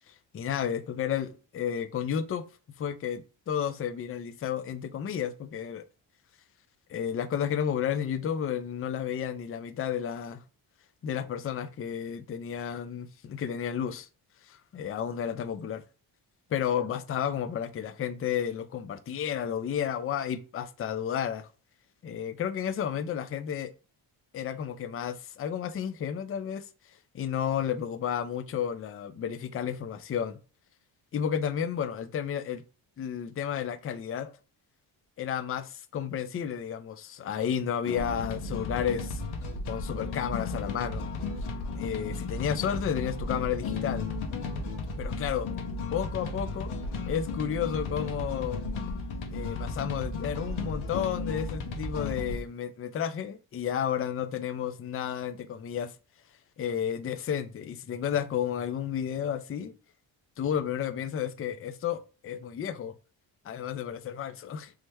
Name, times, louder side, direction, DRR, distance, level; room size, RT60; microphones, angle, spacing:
voice 1, 0.3-2.4 2.8-5.8 6.9-10.4 11.0-14.1 14.5-15.8 16.5-21.5 22.0-23.7 24.3-26.6 27.1-30.4 31.1-32.6 33.0-34.3 35.2-39.2 39.7-41.1 41.7-44.1 45.0-45.5 45.9-46.7 47.1-48.6 49.3-55.9 56.6-59.7 60.4-62.9 63.4-64.7, left 8 dB, 30° left, 0.4 m, -32 dB
sound 1, 37.9-52.4, left 3 dB, 75° left, 0.8 m, -34 dB
3.2 x 2.1 x 3.3 m
supercardioid pair, 55°, 49 cm